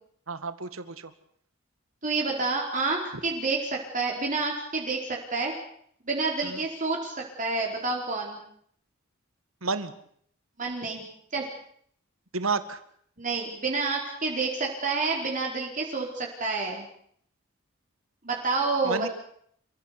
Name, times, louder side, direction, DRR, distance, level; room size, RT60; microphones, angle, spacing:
voice 1, 0.3-1.1 6.4-6.6 9.6-9.9 12.3-12.8 18.8-19.1, right 4 dB, 85° right, 12 dB, 2.1 m, -31 dB
voice 2, 2.0-5.5 6.1-8.4 10.6-11.0 11.3-11.5 13.2-16.8 18.2-19.1, right 3 dB, 40° right, -1 dB, 4.7 m, -29 dB
28.5 x 16.0 x 8.4 m, 0.65 s
head